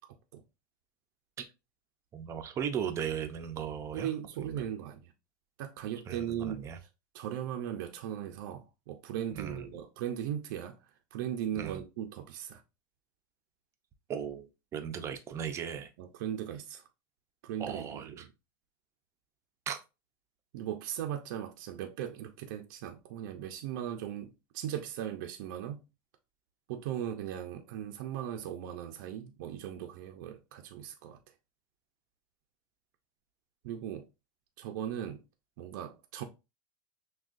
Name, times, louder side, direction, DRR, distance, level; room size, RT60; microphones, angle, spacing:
voice 1, 2.1-4.1 4.5-4.6 6.1-6.8 9.3-9.8 11.6-11.8 14.1-15.9 17.6-18.2 19.7-19.8, right 8 dB, 25° right, 0.6 m, -37 dB
voice 2, 3.9-5.1 5.6-6.7 7.1-10.8 11.1-12.6 16.0-16.8 17.4-18.3 20.5-25.8 26.7-31.2 33.6-34.1 34.6-35.2 35.6-36.2, right 10 dB, 65° right, 0.6 m, -38 dB
6.1 x 2.3 x 2.5 m
supercardioid pair, 150°, 11 cm